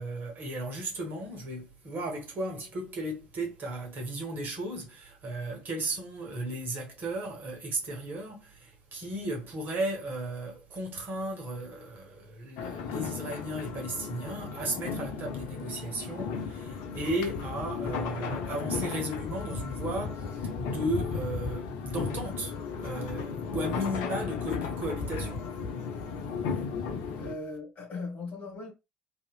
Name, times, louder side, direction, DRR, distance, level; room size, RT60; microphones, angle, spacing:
voice 1, 0.0-22.5 22.8-25.7 26.5-26.6 27.0-27.1, right 1 dB, 45° right, 1.3 m, -35 dB
sound 1, 12.6-27.3, left 5 dB, 60° left, 0.5 m, -35 dB
voice 2, 27.2-28.7, left 3 dB, 40° left, 1.6 m, -38 dB
3.0 x 2.6 x 2.2 m
figure-of-eight pair, 55°, 5 cm